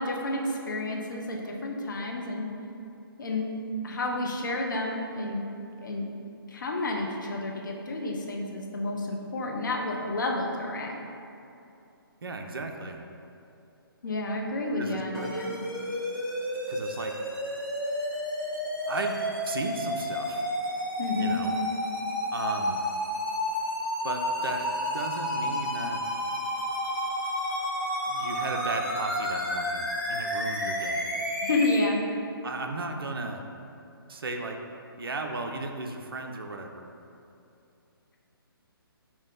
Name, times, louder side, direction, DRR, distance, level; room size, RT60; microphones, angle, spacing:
voice 1, 0.0-2.5 3.2-3.5 3.8-5.4 5.8-6.1 6.5-11.0 14.0-15.6 21.0-21.4 31.4-32.0, left 2 dB, 55° left, 0 dB, 0.5 m, -30 dB
voice 2, 12.2-13.1 14.8-15.3 16.7-17.2 18.9-19.2 19.4-20.4 21.2-21.5 22.3-22.9 24.0-24.7 24.9-26.1 28.1-31.1 32.4-33.4 34.1-34.6 35.0-36.9, right 3 dB, 70° right, 3 dB, 0.4 m, -35 dB
sound 1, 15.1-31.7, equal, 5° left, 0.7 m, -31 dB
4.4 x 2.0 x 3.9 m, 2.7 s
figure-of-eight pair, 135°, 13 cm